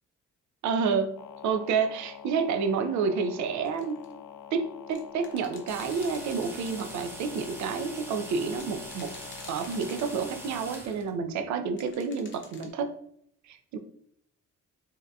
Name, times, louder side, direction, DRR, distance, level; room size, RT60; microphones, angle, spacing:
voice 1, 0.6-1.1 1.4-4.0 4.5-9.1 9.5-12.9 13.5-13.8, right 5 dB, 70° right, 7 dB, 0.5 m, -29 dB
sound 1, 1.2-10.8, left 8 dB, 80° left, 0.5 m, -46 dB
sound 2, 3.6-4.1 4.9-7.4 8.5-10.6 11.8-12.7, left 4 dB, 40° left, 0.7 m, -50 dB
sound 3, 5.7-11.1, right 1 dB, 10° right, 0.9 m, -43 dB
3.6 x 2.7 x 2.2 m, 0.69 s
cardioid pair, 90°, 30 cm